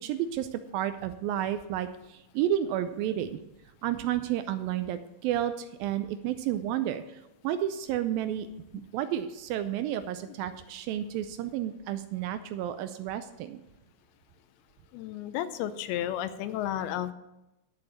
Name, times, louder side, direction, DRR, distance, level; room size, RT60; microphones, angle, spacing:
voice 1, 0.0-3.4 3.8-8.5 8.9-13.6, right 11 dB, 80° right, 10 dB, 2.2 m, -31 dB
voice 2, 14.9-17.1, left 11 dB, 80° left, 12 dB, 2.6 m, -32 dB
11.5 x 7.1 x 6.3 m, 0.94 s
omnidirectional pair, 4.5 m